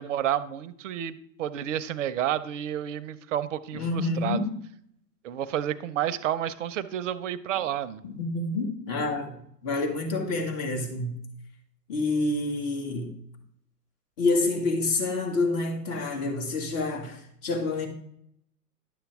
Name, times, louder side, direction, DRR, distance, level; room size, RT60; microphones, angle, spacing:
voice 1, 0.0-4.4 5.2-8.0, right 11 dB, 50° right, 0.7 m, -30 dB
voice 2, 3.7-4.5 8.0-11.2 11.9-13.1 14.2-17.9, left 2 dB, 30° left, 2.0 m, -28 dB
11.0 x 7.0 x 3.5 m
hypercardioid pair, 115°, 50 cm